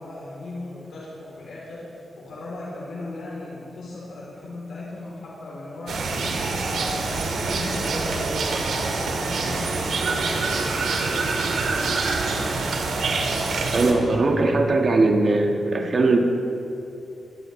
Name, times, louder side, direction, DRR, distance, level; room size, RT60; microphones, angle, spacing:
voice 1, 0.0-6.5 7.0-11.2, left 2 dB, 80° left, -6 dB, 3.3 m, -37 dB
sound 1, 5.9-13.9, right 3 dB, 85° right, 1.9 m, -25 dB
voice 2, 13.7-16.2, right 2 dB, 45° right, 2 dB, 1.5 m, -20 dB
20.5 x 16.0 x 3.2 m, 2.8 s
cardioid pair, 100°, 0 cm